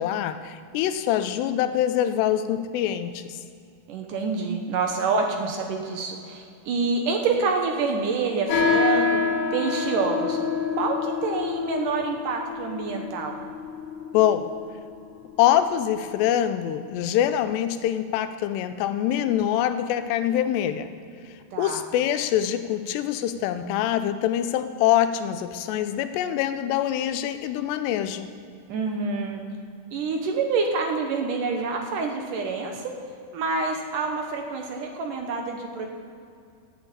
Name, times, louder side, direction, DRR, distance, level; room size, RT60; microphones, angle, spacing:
voice 1, 0.0-3.4 14.1-14.5 15.4-20.9 21.6-28.3, left 11 dB, 85° left, 11 dB, 2.8 m, -24 dB
voice 2, 3.9-9.2 9.5-10.4 10.7-13.4 21.5-21.8 28.7-29.4 29.9-32.8 33.3-35.9, right 4 dB, 70° right, 3 dB, 2.1 m, -27 dB
sound 1, 8.5-16.3, left 5 dB, 65° left, 3.5 m, -27 dB
13.0 x 7.0 x 9.0 m, 2.5 s
omnidirectional pair, 4.9 m